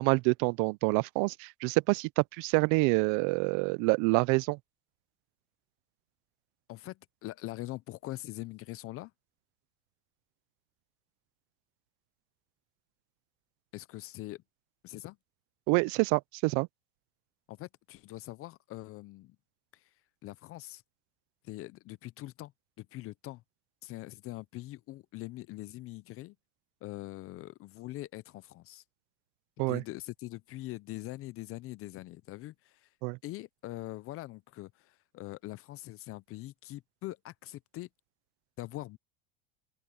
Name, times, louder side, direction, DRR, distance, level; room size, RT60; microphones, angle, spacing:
voice 1, 0.0-4.6 15.7-16.7 29.6-29.8 33.0-33.2, right 28 dB, 60° right, 0.6 m, -27 dB
voice 2, 6.7-9.1 13.7-14.4 14.8-15.2 17.5-19.4 19.7-19.9 20.2-20.8 21.4-22.5 22.8-23.4 23.8-26.4 26.8-28.8 29.7-32.9 33.2-37.9 38.6-39.0, left 17 dB, 40° left, 0.6 m, -43 dB
open air
supercardioid pair, 130°, 36 cm